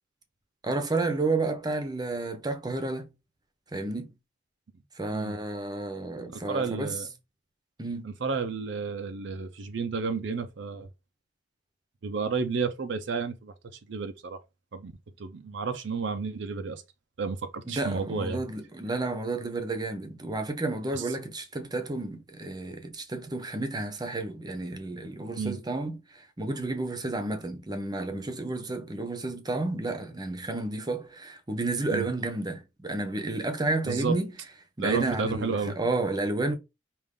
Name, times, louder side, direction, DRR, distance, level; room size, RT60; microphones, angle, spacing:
voice 1, 0.6-3.1 3.7-4.1 5.0-6.9 7.8-8.1 17.7-34.3 34.8-36.6, right 2 dB, 20° right, 0.8 m, -31 dB
voice 2, 6.5-7.1 8.0-10.9 12.0-13.5 13.9-14.4 14.7-14.9 15.2-16.8 17.2-18.4 20.9-21.0 25.4-25.6 31.9-32.1 33.8-34.2 34.8-35.8, right 5 dB, 70° right, 0.5 m, -31 dB
5.1 x 2.5 x 3.6 m
head